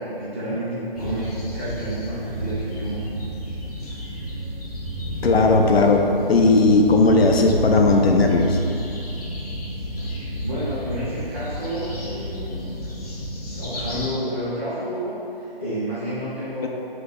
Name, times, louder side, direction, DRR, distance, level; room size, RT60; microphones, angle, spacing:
voice 1, 0.0-3.1 10.4-12.8 13.5-16.7, equal, 15° right, -12 dB, 0.6 m, -30 dB
sound 1, 0.9-14.1, right 1 dB, 40° left, 0.6 m, -30 dB
voice 2, 5.2-8.6 16.6-16.7, left 3 dB, 85° left, 2 dB, 0.5 m, -17 dB
3.0 x 2.7 x 3.6 m, 2.8 s
figure-of-eight pair, 150°, 30 cm